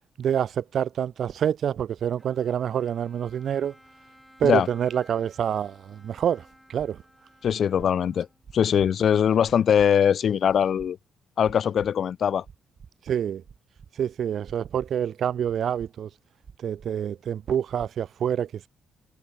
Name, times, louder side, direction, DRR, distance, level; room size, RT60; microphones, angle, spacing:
voice 1, 0.2-3.7 4.4-6.4 6.7-7.0 13.1-13.4 14.0-16.1 16.6-18.7, right 9 dB, 60° right, 0.6 m, -27 dB
Bowed string instrument, 2.2-8.6, equal, ahead, 7.9 m, -56 dB
sound 1, 6.8-6.9 7.4-7.9 8.4-8.9 9.4-9.9 10.4-10.9 11.4-11.9 12.4-12.9 13.4-13.9 14.4-14.9 15.4-15.9 16.4-16.9 17.4-17.9, right 6 dB, 45° right, 2.8 m, -47 dB
voice 2, 7.4-8.3 8.5-11.0 11.4-12.4, left 8 dB, 60° left, 0.6 m, -21 dB
cardioid pair, 90°, 0 cm